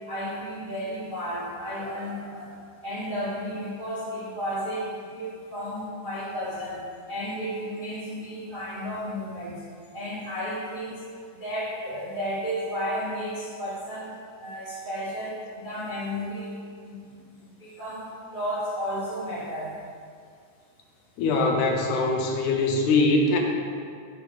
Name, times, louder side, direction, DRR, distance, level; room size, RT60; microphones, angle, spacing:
voice 1, 0.1-2.5 2.8-6.8 7.1-9.5 9.9-11.0 11.4-14.1 14.4-16.5 16.8-17.0 17.6-19.7, equal, 45° right, -10 dB, 0.6 m, -33 dB
voice 2, 21.2-23.4, left 3 dB, 85° left, 1 dB, 2.3 m, -22 dB
8.1 x 3.5 x 5.4 m, 2.2 s
omnidirectional pair, 3.4 m